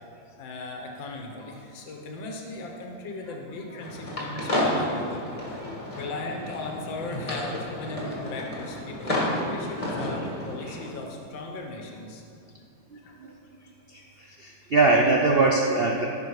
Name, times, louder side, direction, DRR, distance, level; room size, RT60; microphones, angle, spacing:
voice 1, 0.4-5.3 6.0-12.2 13.0-13.2, left 2 dB, 75° left, 1 dB, 1.8 m, -37 dB
sound 1, 3.8-10.9, left 1 dB, 20° left, 1.5 m, -31 dB
voice 2, 14.2-16.0, right 3 dB, 80° right, -1 dB, 0.5 m, -21 dB
15.5 x 6.1 x 4.8 m, 2.4 s
omnidirectional pair, 2.1 m